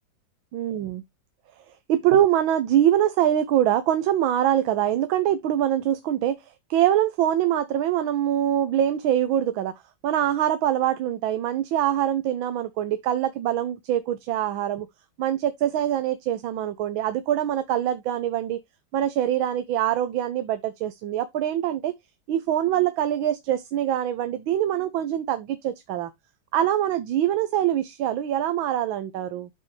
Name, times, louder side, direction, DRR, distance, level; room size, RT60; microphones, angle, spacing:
voice 1, 0.5-1.0 1.9-9.7 10.0-14.9 15.2-18.6 18.9-21.9 22.3-26.1 26.5-29.5, right 11 dB, 85° right, 1.6 m, -24 dB
12.5 x 4.5 x 3.2 m
omnidirectional pair, 2.1 m